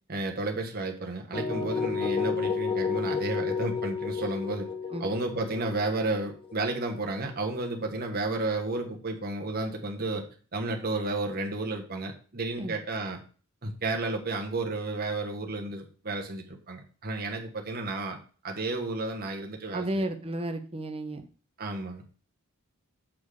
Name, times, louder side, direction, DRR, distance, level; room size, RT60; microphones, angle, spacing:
voice 1, 0.1-4.7 5.0-10.3 10.5-13.2 13.6-18.2 18.4-20.0 21.6-22.0, right 2 dB, 40° right, 2 dB, 1.2 m, -32 dB
sound 1, 1.3-7.2, left 5 dB, 25° left, 0.6 m, -31 dB
voice 2, 19.7-21.2, right 1 dB, 25° right, 6 dB, 0.7 m, -32 dB
7.2 x 4.4 x 4.9 m, 0.39 s
head